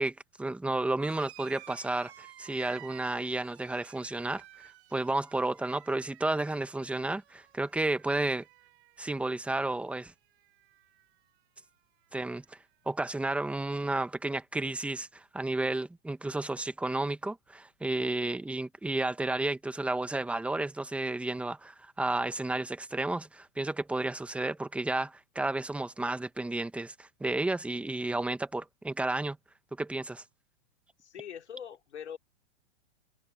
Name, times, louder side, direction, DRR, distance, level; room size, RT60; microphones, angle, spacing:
voice 1, 0.0-4.4 4.9-8.5 9.0-10.1 12.1-12.6 12.9-29.4 29.8-30.2, right 2 dB, 5° right, 1.3 m, -32 dB
sound 1, 1.0-10.0 10.3-11.1 12.2-12.3, right 14 dB, 70° right, 4.5 m, -54 dB
voice 2, 31.0-32.2, left 8 dB, 90° left, 3.2 m, -42 dB
hypercardioid pair, 130°, 33 cm